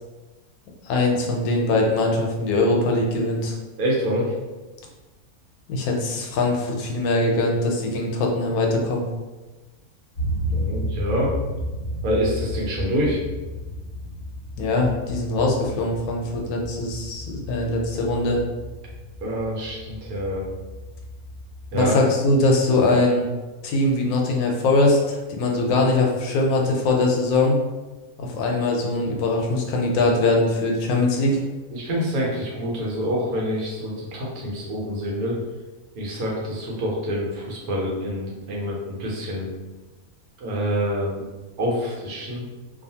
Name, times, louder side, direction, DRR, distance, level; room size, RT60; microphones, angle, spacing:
voice 1, 0.8-3.5 5.7-9.0 14.6-18.4 21.7-23.3 23.6-27.6 28.2-31.4, left 2 dB, 85° left, 0 dB, 1.1 m, -22 dB
voice 2, 3.8-4.4 10.5-11.3 12.0-13.2 19.2-20.5 21.7-21.9 31.7-35.4 35.9-39.5 40.4-41.3 41.6-42.5, equal, 80° right, -3 dB, 1.2 m, -26 dB
sound 1, 10.2-21.7, equal, 30° left, 0.8 m, -32 dB
2.7 x 2.3 x 2.7 m, 1.2 s
omnidirectional pair, 1.5 m